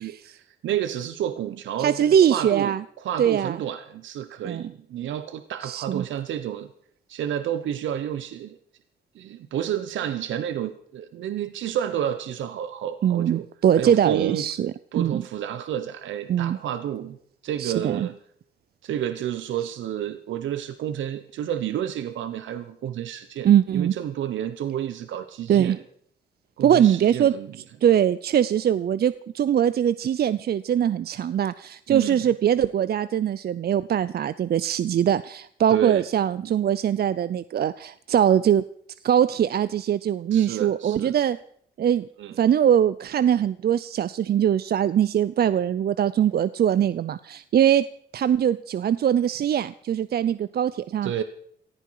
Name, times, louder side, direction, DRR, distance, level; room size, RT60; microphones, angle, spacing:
voice 1, 0.0-6.7 7.1-8.6 9.1-13.5 13.7-14.5 14.9-17.2 17.4-18.2 18.8-25.8 26.6-27.5 31.9-32.2 35.7-36.0 40.3-41.2 42.2-42.4 51.0-51.2, right 10 dB, 85° right, 11 dB, 1.0 m, -30 dB
voice 2, 1.8-2.8 3.2-3.6 4.4-4.7 5.6-6.0 13.0-15.2 16.3-16.6 17.6-18.1 23.4-23.9 25.5-25.8 26.6-27.3 27.8-38.6 39.0-41.4 41.8-42.1 42.4-47.9 48.1-51.1, right 9 dB, 55° right, 16 dB, 0.5 m, -22 dB
18.5 x 14.0 x 4.8 m, 0.64 s
cardioid pair, 80°, 19 cm